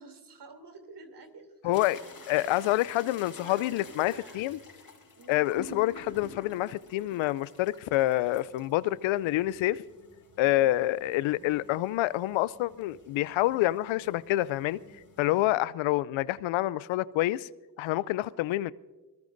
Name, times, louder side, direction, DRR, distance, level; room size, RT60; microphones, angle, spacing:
voice 1, 0.0-1.8 2.3-2.8 3.3-4.5 5.1-5.4 10.4-10.7 15.3-15.6, right 4 dB, 60° right, 3.2 m, -49 dB
voice 2, 1.6-2.0 2.3-4.6 5.3-9.8 10.4-14.8 15.2-17.5 17.8-18.7, left 16 dB, 80° left, 0.5 m, -27 dB
sound 1, 1.7-15.5, left 3 dB, 45° left, 4.2 m, -50 dB
23.5 x 20.5 x 2.6 m
supercardioid pair, 40°, 46 cm